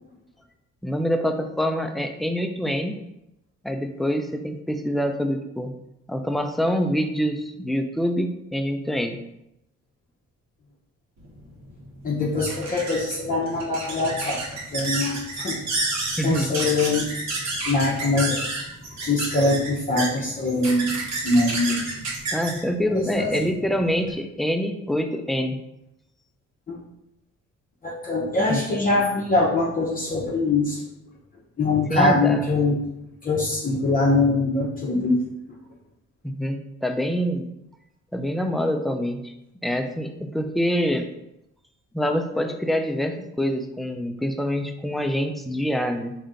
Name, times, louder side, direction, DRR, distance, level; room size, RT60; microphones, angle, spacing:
voice 1, 0.8-2.9 3.6-5.7 6.1-9.2 16.2-16.5 22.3-25.6 28.5-28.6 31.9-32.5 36.2-37.5 38.1-39.3 39.6-41.1 41.9-46.1, equal, ahead, 5 dB, 0.3 m, -25 dB
sound 1, 11.2-24.2, right 2 dB, 65° right, 1.2 m, -31 dB
voice 2, 12.0-14.4 14.7-15.9 16.2-17.1 17.7-18.4 19.0-21.8 22.9-23.3 26.7-26.8 27.8-30.8 31.6-32.8 33.2-35.2, left 2 dB, 30° left, -5 dB, 0.8 m, -23 dB
3.5 x 2.7 x 3.8 m, 0.84 s
cardioid pair, 90°, 30 cm